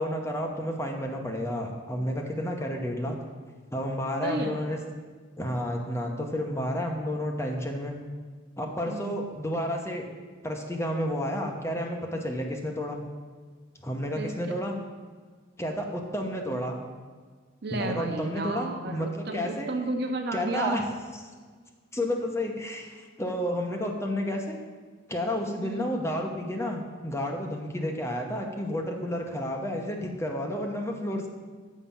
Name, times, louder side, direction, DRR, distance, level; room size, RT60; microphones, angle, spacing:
voice 1, 0.0-3.2 3.7-4.8 5.4-8.0 8.6-10.0 10.4-13.0 13.8-14.8 15.6-16.8 17.7-19.7 20.3-20.8 21.9-24.6 25.1-31.3, equal, 15° left, 1 dB, 0.9 m, -31 dB
voice 2, 4.2-4.5 8.9-9.2 14.1-14.3 17.6-20.8 25.6-25.9, right 2 dB, 55° right, 4 dB, 0.9 m, -32 dB
7.3 x 4.9 x 7.1 m, 1.5 s
head